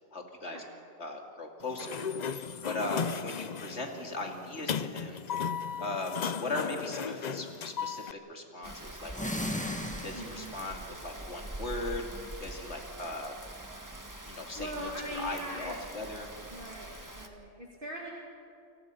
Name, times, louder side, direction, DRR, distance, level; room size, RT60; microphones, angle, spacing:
voice 1, 0.1-0.6 1.0-2.0 2.6-5.2 5.8-6.1 6.4-9.6 10.0-12.1 12.4-13.3 14.3-16.3, left 2 dB, 65° left, 2 dB, 2.9 m, -38 dB
Sliding door, 1.6-8.1, left 7 dB, 45° left, 0.6 m, -36 dB
Rain, 8.6-17.3, right 1 dB, 15° right, 1.7 m, -44 dB
sound 1, 9.1-10.7, left 1 dB, 5° left, 1.5 m, -35 dB
voice 2, 10.1-10.5 14.5-15.7 16.5-18.1, equal, 50° right, -2 dB, 2.6 m, -41 dB
28.0 x 24.0 x 5.6 m, 2.6 s
omnidirectional pair, 1.2 m